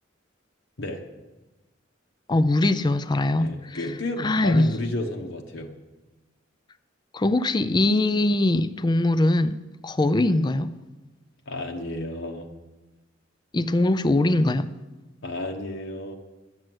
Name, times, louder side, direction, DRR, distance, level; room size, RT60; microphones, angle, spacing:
voice 1, 2.3-3.8 4.2-4.7 7.1-9.6 9.8-10.7 13.5-14.7, left 2 dB, 20° left, 0.5 m, -22 dB
voice 2, 3.4-5.7 11.5-12.5 15.2-16.2, left 2 dB, 65° left, 1.0 m, -32 dB
11.5 x 7.7 x 7.9 m
head